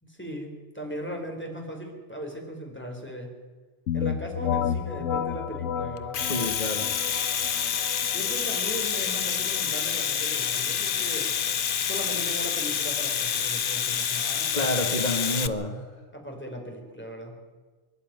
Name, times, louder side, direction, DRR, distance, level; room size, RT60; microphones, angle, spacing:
voice 1, 0.0-3.4 3.9-6.2 8.1-11.3 11.8-15.3 16.1-17.4, equal, 10° left, 1 dB, 4.1 m, -38 dB
sound 1, 3.9-13.4, left 8 dB, 80° left, 1.4 m, -33 dB
Domestic sounds home sounds, 6.0-15.5, left 8 dB, 50° left, 0.8 m, -28 dB
voice 2, 6.2-6.9 14.5-15.9, left 1 dB, 35° left, 2 dB, 1.8 m, -29 dB
25.0 x 11.5 x 9.4 m, 1.4 s
omnidirectional pair, 1.3 m